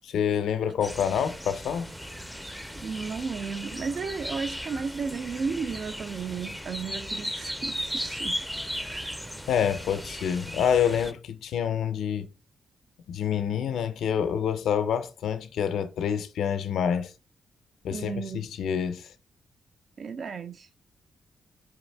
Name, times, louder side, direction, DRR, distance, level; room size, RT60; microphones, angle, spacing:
voice 1, 0.0-1.9 9.5-12.3 13.1-17.1 17.8-19.1, left 8 dB, 85° left, 0.5 m, -27 dB
sound 1, 0.8-11.1, equal, ahead, 0.4 m, -36 dB
voice 2, 2.8-8.4 8.8-9.2 17.9-18.5 20.0-20.7, right 5 dB, 60° right, 0.4 m, -34 dB
4.8 x 2.6 x 3.3 m
cardioid pair, 70°, 0 cm